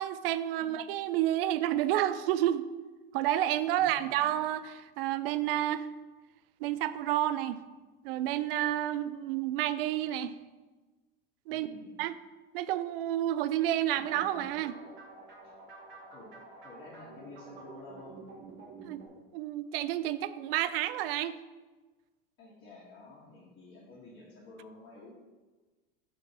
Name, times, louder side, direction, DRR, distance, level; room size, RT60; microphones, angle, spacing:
voice 1, 0.0-2.7 3.1-5.9 6.6-7.6 8.0-10.3 11.5-11.7 12.0-12.2 12.5-14.8 18.8-19.0 19.3-21.3, right 13 dB, 75° right, 14 dB, 0.5 m, -30 dB
voice 2, 3.8-4.2 11.5-12.0 15.4-15.5 16.1-16.3 16.6-18.2 22.4-25.1, left 2 dB, 35° left, -8 dB, 1.7 m, -51 dB
sound 1, 13.9-19.1, right 3 dB, 45° right, 2.0 m, -49 dB
4.5 x 4.4 x 5.5 m, 1.3 s
supercardioid pair, 110°, 29 cm